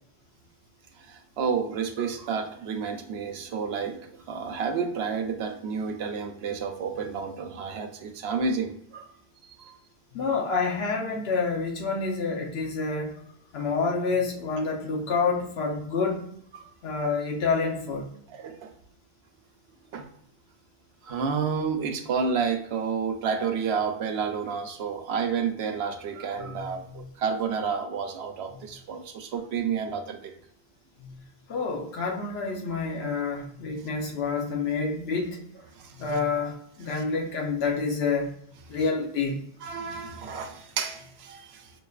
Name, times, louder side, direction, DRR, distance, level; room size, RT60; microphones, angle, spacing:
voice 1, 1.0-9.1 9.6-9.8 16.5-16.6 18.3-18.7 19.9-20.1 21.0-30.3 35.7-36.0 36.9-37.0 39.6-41.7, right 6 dB, 85° right, 6 dB, 0.9 m, -30 dB
voice 2, 10.1-13.2 13.5-16.3 16.8-18.1 26.4-27.1 31.0-31.1 31.5-35.4 36.0-38.3 38.7-39.4, left 4 dB, 75° left, 0 dB, 1.0 m, -28 dB
6.0 x 2.5 x 2.4 m, 0.71 s
omnidirectional pair, 1.1 m